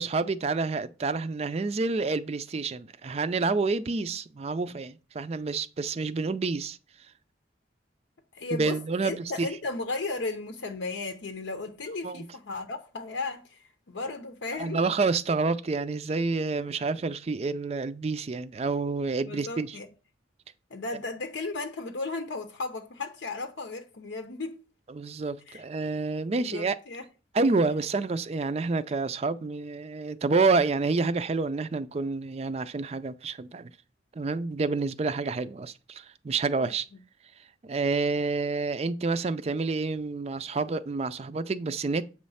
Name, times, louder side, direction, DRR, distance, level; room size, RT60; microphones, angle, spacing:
voice 1, 0.0-6.8 8.5-9.5 12.0-12.2 14.5-19.8 24.9-26.8 27.3-33.7 34.1-36.9 37.6-42.0, right 3 dB, 35° right, 0.4 m, -28 dB
voice 2, 8.3-8.8 9.0-14.8 19.3-19.9 20.7-24.6 25.5-25.6 26.3-27.0 36.6-36.7, left 3 dB, 85° left, 0.7 m, -35 dB
7.9 x 3.2 x 5.5 m
head